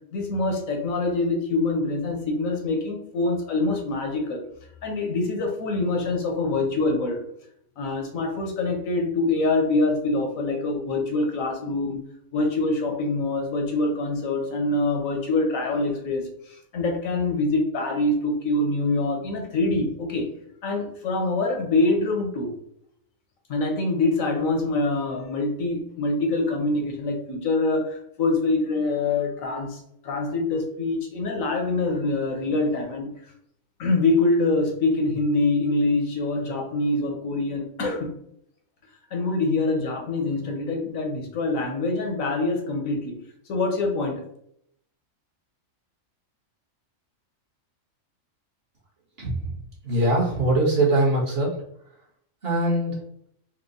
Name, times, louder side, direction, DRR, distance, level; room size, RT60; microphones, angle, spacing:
voice 1, 0.1-4.4 4.8-7.2 7.8-12.0 12.3-16.3 16.7-20.3 20.6-22.5 23.5-33.1 33.8-38.1 39.1-43.1 43.5-44.2, left 2 dB, 80° left, 3 dB, 1.3 m, -25 dB
voice 2, 49.8-51.6 52.4-53.0, right 1 dB, 50° right, -3 dB, 1.5 m, -22 dB
4.4 x 2.1 x 3.9 m, 0.71 s
omnidirectional pair, 1.4 m